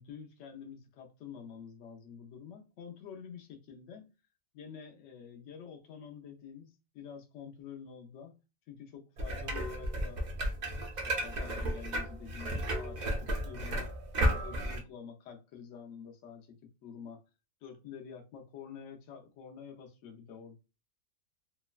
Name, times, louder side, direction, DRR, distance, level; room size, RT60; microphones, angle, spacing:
voice 1, 0.0-4.1 4.5-8.4 8.7-13.9 14.3-17.2 17.6-20.6, left 7 dB, 65° left, 0.9 m, -48 dB
sound 1, 9.2-14.8, equal, 55° right, 0.4 m, -33 dB
3.0 x 2.1 x 2.3 m
omnidirectional pair, 1.5 m